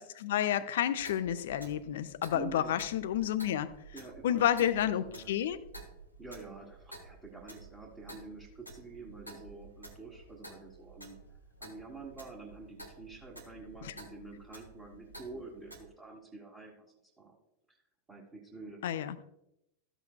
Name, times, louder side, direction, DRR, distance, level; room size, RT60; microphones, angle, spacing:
voice 1, 0.0-3.7 4.2-5.6 13.8-13.9 18.8-19.2, left 10 dB, 55° left, 13 dB, 0.5 m, -30 dB
Clock, 0.9-15.9, right 2 dB, 90° right, 1.4 m, -52 dB
voice 2, 2.3-2.7 3.9-5.3 6.2-11.1 11.6-16.7 17.2-17.3 17.7-17.8 18.1-18.9, right 4 dB, 20° right, -2 dB, 1.7 m, -48 dB
14.0 x 8.1 x 2.2 m, 0.83 s
figure-of-eight pair, 90°, 0 cm